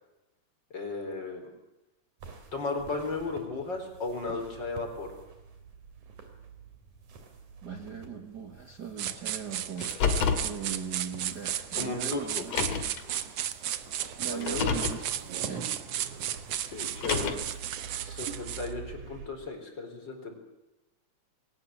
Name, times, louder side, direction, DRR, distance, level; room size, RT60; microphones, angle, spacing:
voice 1, 0.7-1.5 2.5-5.1 11.8-12.4 14.3-14.7 16.6-17.4 18.0-20.4, left 3 dB, 35° left, 4 dB, 4.8 m, -35 dB
sound 1, 2.2-19.3, right 5 dB, 90° right, 4.3 m, -47 dB
voice 2, 7.6-12.6 14.2-15.1 15.4-15.7, right 7 dB, 40° right, 5 dB, 1.7 m, -39 dB
sound 2, 9.0-18.7, right 11 dB, 65° right, 1.8 m, -34 dB
Car, 9.8-10.5 11.6-11.7 12.4-13.0 14.3-15.0 16.8-17.6, left 5 dB, 60° left, 3.0 m, -29 dB
21.5 x 18.5 x 9.2 m, 0.97 s
omnidirectional pair, 3.4 m